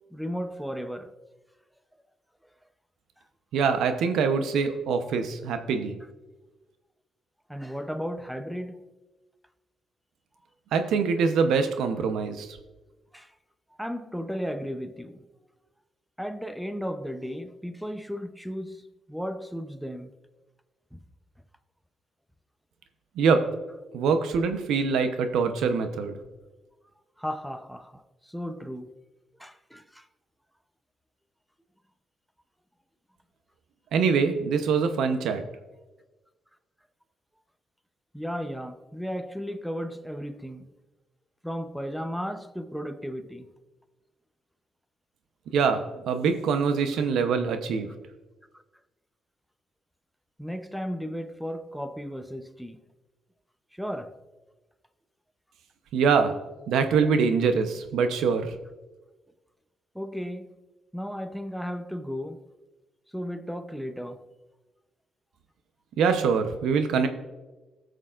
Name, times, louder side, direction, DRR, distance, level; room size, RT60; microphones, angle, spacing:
voice 1, 0.1-1.1 7.5-8.9 13.1-13.3 13.8-15.2 16.2-18.8 19.1-20.1 20.9-21.0 27.2-28.9 29.4-30.0 38.1-40.7 41.4-43.5 50.4-52.8 53.7-54.1 59.9-60.5 60.9-62.4 63.1-64.2, equal, ahead, 0.7 m, -35 dB
voice 2, 3.5-6.0 10.7-12.6 23.2-23.4 23.9-26.2 33.9-35.4 45.5-47.9 55.9-56.4 56.7-58.5 66.0-67.1, right 5 dB, 80° right, 0.8 m, -24 dB
18.5 x 6.4 x 2.5 m
cardioid pair, 90°, 0 cm